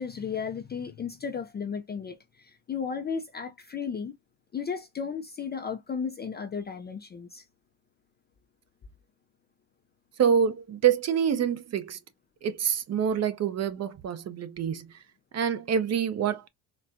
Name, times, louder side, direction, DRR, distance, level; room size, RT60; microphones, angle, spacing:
voice 1, 0.0-4.1 4.5-7.4, left 6 dB, 25° left, 0.4 m, -34 dB
voice 2, 10.2-12.0 12.4-14.9 15.3-16.5, right 8 dB, 35° right, 0.6 m, -26 dB
4.1 x 2.2 x 2.5 m
cardioid pair, 105°, 45 cm